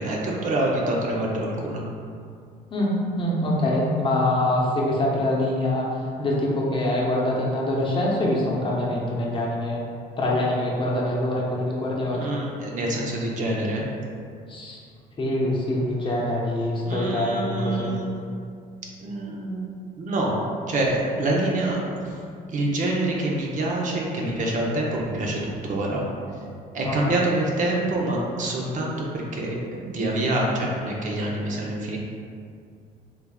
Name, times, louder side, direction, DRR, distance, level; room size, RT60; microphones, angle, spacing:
voice 1, 0.0-1.8 12.1-13.9 16.8-18.2 19.0-19.7 20.0-22.2 22.5-26.1 26.7-32.0, right 1 dB, 50° right, -2 dB, 0.6 m, -26 dB
voice 2, 2.7-9.8 10.2-12.3 14.5-14.8 15.2-18.0 26.8-27.1, left 1 dB, 30° left, -4 dB, 0.7 m, -24 dB
3.5 x 3.3 x 2.3 m, 2.3 s
cardioid pair, 110°, 17 cm